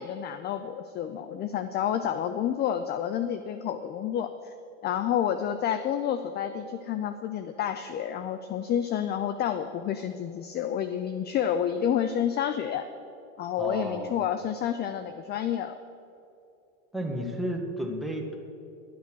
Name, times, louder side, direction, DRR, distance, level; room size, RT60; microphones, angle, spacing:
voice 1, 0.0-4.5 4.8-12.8 13.4-15.8, left 9 dB, 25° left, 10 dB, 0.4 m, -29 dB
voice 2, 13.6-14.2 16.9-18.4, equal, ahead, 2 dB, 1.6 m, -32 dB
12.0 x 8.4 x 6.2 m, 2.7 s
hypercardioid pair, 105°, 39 cm